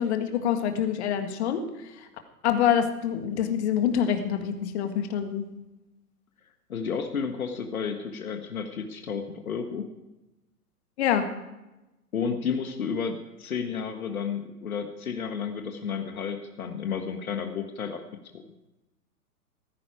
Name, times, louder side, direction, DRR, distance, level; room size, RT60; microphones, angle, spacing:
voice 1, 0.0-1.6 2.4-5.4 11.0-11.3, left 9 dB, 45° left, 7 dB, 1.8 m, -26 dB
voice 2, 6.7-9.8 12.1-18.0 18.3-18.4, left 6 dB, 65° left, 6 dB, 1.5 m, -32 dB
15.5 x 14.0 x 4.9 m, 1.0 s
figure-of-eight pair, 115°, 46 cm